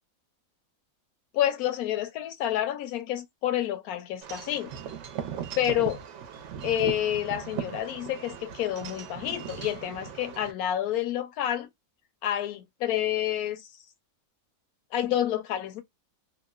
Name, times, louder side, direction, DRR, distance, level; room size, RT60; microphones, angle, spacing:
voice 1, 1.3-4.7 5.6-6.0 6.6-11.7 12.2-13.7 14.9-15.8, left 12 dB, 85° left, 1.1 m, -29 dB
Wind chime / Wind, 4.2-10.5, right 9 dB, 65° right, 0.8 m, -38 dB
2.8 x 2.1 x 2.3 m
omnidirectional pair, 1.5 m